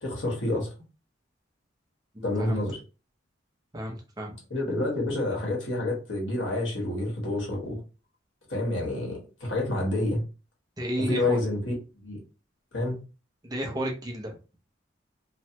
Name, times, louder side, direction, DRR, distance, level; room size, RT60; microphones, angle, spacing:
voice 1, 0.0-0.7 2.2-2.8 4.5-7.8 8.5-10.2 11.0-12.2 12.7-13.0, left 2 dB, 80° left, 1.4 m, -28 dB
voice 2, 2.1-2.6 3.7-4.4 10.8-11.4 13.4-14.3, equal, 20° right, 0.7 m, -32 dB
3.1 x 2.1 x 2.9 m
head